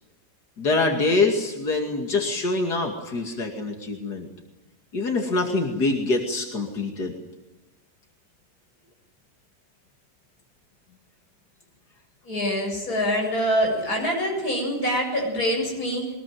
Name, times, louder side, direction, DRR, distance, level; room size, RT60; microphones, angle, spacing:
voice 1, 0.6-4.3 4.9-7.1, left 3 dB, 90° left, 2 dB, 3.1 m, -25 dB
voice 2, 12.2-16.1, equal, 65° left, 0 dB, 8.4 m, -25 dB
23.0 x 20.5 x 9.3 m, 1.1 s
omnidirectional pair, 1.7 m